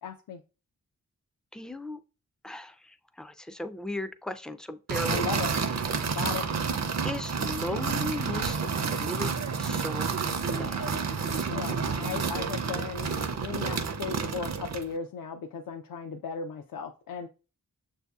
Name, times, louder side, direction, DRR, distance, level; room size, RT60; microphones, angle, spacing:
voice 1, 0.0-0.4 5.0-5.5 6.1-6.4 11.5-13.1 13.4-17.3, left 6 dB, 70° left, 0.5 m, -36 dB
voice 2, 1.5-2.0 2.4-2.7 3.2-5.2 7.0-10.1 10.6-11.0, left 1 dB, ahead, 0.3 m, -36 dB
sound 1, 4.9-14.9, right 5 dB, 50° right, 0.5 m, -30 dB
6.4 x 2.7 x 2.3 m
cardioid pair, 50°, 35 cm